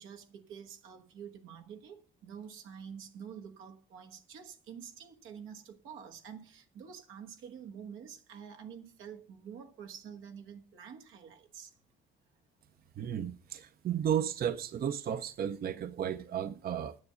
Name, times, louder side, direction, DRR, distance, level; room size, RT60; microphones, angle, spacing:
voice 1, 0.0-11.8, right 7 dB, 85° right, 1.3 m, -48 dB
voice 2, 13.0-17.0, right 9 dB, 50° right, 0.6 m, -33 dB
9.5 x 6.8 x 6.8 m
cardioid pair, 90°, 20 cm